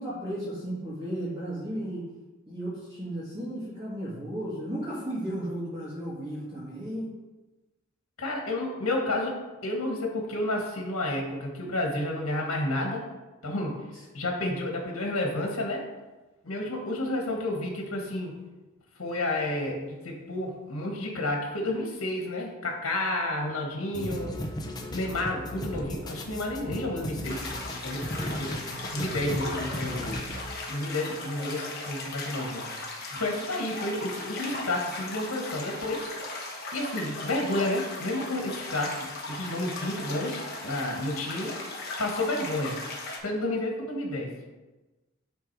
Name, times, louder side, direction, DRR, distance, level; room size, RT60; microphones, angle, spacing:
voice 1, 0.0-2.1 2.5-7.1, right 1 dB, 20° right, -10 dB, 1.8 m, -34 dB
voice 2, 8.2-13.1 13.4-13.8 14.1-15.8 16.4-18.4 19.0-24.4 24.9-27.5 27.8-28.6 28.9-30.2 30.7-32.7 33.1-36.2 36.7-41.6 42.0-42.8 43.2-44.3, left 1 dB, 85° left, 1 dB, 1.5 m, -31 dB
sound 1, 23.9-30.6, equal, 20° left, 0.7 m, -36 dB
sound 2, 27.2-43.2, left 2 dB, 45° left, 1.3 m, -37 dB
9.4 x 3.6 x 4.7 m, 1.1 s
head